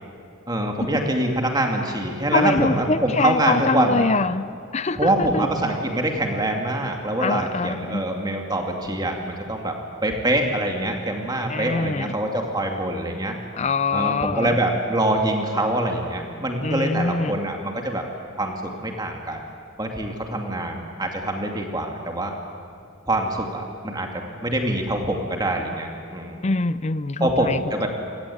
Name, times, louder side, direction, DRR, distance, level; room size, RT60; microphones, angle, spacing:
voice 1, 0.5-4.0 4.9-9.7 10.0-13.4 13.9-18.0 18.4-18.5 18.8-19.4 19.8-22.3 23.1-26.4 27.2-27.9, right 1 dB, 20° right, 2 dB, 2.5 m, -24 dB
voice 2, 2.3-4.5 4.7-5.5 7.2-8.0 11.5-12.2 13.5-14.6 16.6-17.4 26.4-27.9, left 3 dB, 35° left, 14 dB, 0.5 m, -24 dB
28.0 x 19.5 x 8.7 m, 2.3 s
head